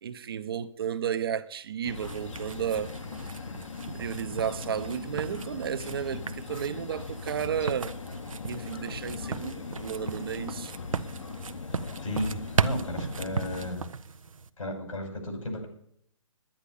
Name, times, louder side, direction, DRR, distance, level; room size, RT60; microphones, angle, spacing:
voice 1, 0.0-3.0 3.9-8.0 8.4-10.7, right 8 dB, 45° right, 0.8 m, -33 dB
sound 1, 1.8-13.8, left 4 dB, 65° left, 1.3 m, -39 dB
sound 2, 2.0-14.5, right 5 dB, 80° right, 0.9 m, -36 dB
voice 2, 12.0-13.9 14.6-15.7, left 1 dB, 80° left, 6.0 m, -34 dB
10.5 x 10.5 x 8.6 m
hypercardioid pair, 150°, 17 cm